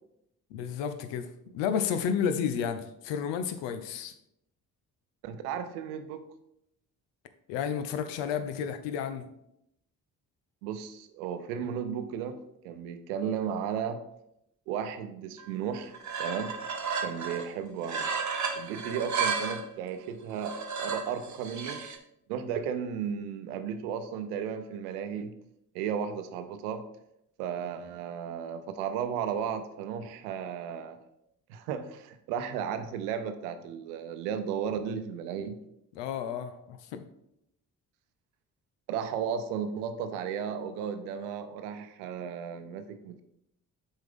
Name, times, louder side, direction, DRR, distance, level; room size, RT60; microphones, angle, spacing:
voice 1, 0.5-4.1 7.5-9.3 35.9-37.0, left 7 dB, 75° left, 10 dB, 0.7 m, -31 dB
voice 2, 5.2-6.3 10.6-12.4 12.6-14.0 14.7-15.9 16.2-16.6 17.0-18.1 18.5-21.9 22.3-25.4 25.7-26.9 27.4-31.0 31.5-35.6 38.9-43.2, right 7 dB, 85° right, 9 dB, 0.7 m, -34 dB
sound 1, 15.4-15.5 15.7-17.5 17.8-19.7 20.3-22.0, right 5 dB, 40° right, 1.1 m, -33 dB
7.7 x 4.5 x 3.6 m, 0.80 s
hypercardioid pair, 40°, 44 cm